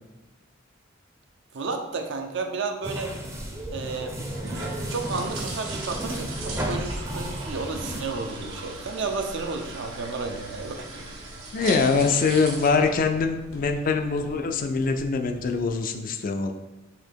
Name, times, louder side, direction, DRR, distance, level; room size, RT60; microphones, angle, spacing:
voice 1, 1.5-3.1 3.7-4.2 4.9-10.9, right 4 dB, 60° right, 4 dB, 0.5 m, -32 dB
sound 1, 2.8-8.0, right 1 dB, 15° right, 0.5 m, -33 dB
sound 2, 3.4-13.7, right 2 dB, 90° right, 1.4 m, -39 dB
sound 3, 8.3-15.8, left 1 dB, 75° left, 0.8 m, -47 dB
voice 2, 11.5-16.5, left 4 dB, 40° left, 6 dB, 0.3 m, -23 dB
4.1 x 2.9 x 4.5 m, 1.1 s
head